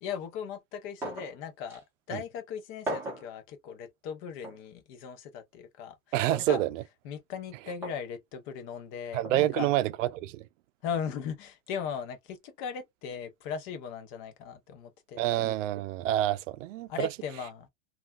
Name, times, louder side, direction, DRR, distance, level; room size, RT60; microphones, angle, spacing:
voice 1, 0.0-9.7 10.8-15.4 16.9-17.7, left 7 dB, 30° left, 0.6 m, -38 dB
sound 1, 1.0-1.4 1.7-1.8 2.9-3.3 4.4-4.6 6.3-6.7 7.8-8.0 9.2-9.4, right 1 dB, 5° right, 1.0 m, -37 dB
voice 2, 6.1-6.8 9.1-10.5 15.2-17.1, right 14 dB, 70° right, 0.5 m, -28 dB
3.3 x 2.4 x 2.3 m
supercardioid pair, 150°, 39 cm